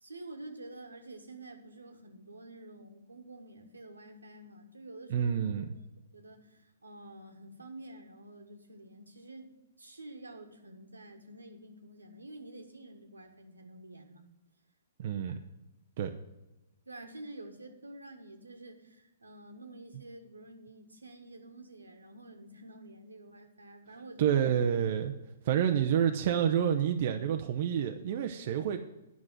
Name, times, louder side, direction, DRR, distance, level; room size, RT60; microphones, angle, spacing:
voice 1, 0.0-5.8 6.1-14.3 15.1-15.5 16.8-24.7, right 2 dB, 80° right, 4 dB, 1.5 m, -49 dB
voice 2, 5.1-5.6 15.0-15.4 16.0-16.1 24.2-25.1 25.4-28.8, right 9 dB, 45° right, 5 dB, 0.7 m, -28 dB
9.8 x 6.1 x 7.4 m, 1.0 s
figure-of-eight pair, 120°, 0 cm